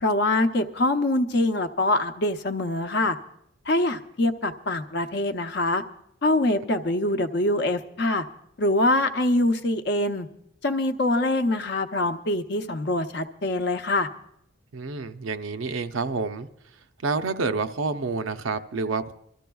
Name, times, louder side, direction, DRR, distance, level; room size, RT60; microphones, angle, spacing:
voice 1, 0.0-3.2 3.7-5.8 6.2-8.2 8.6-10.3 10.6-14.1, left 2 dB, 55° left, 7 dB, 0.7 m, -24 dB
voice 2, 14.7-16.5 17.0-19.1, right 4 dB, 90° right, 8 dB, 0.6 m, -28 dB
25.5 x 13.5 x 2.3 m, 0.76 s
head